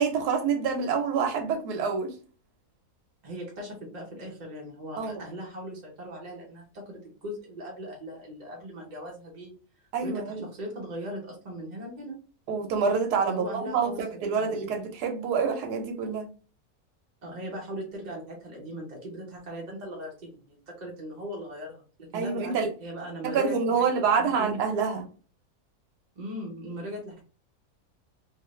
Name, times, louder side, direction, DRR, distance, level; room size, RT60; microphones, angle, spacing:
voice 1, 0.0-2.1 5.0-5.2 9.9-10.4 12.5-16.3 22.1-22.7 23.2-25.0, right 5 dB, 90° right, 1.2 m, -27 dB
voice 2, 3.2-9.5 10.0-12.1 13.3-14.8 17.2-21.8 22.1-22.5 22.8-24.6 26.2-27.2, equal, 40° right, 0.7 m, -39 dB
2.7 x 2.5 x 3.1 m
omnidirectional pair, 1.6 m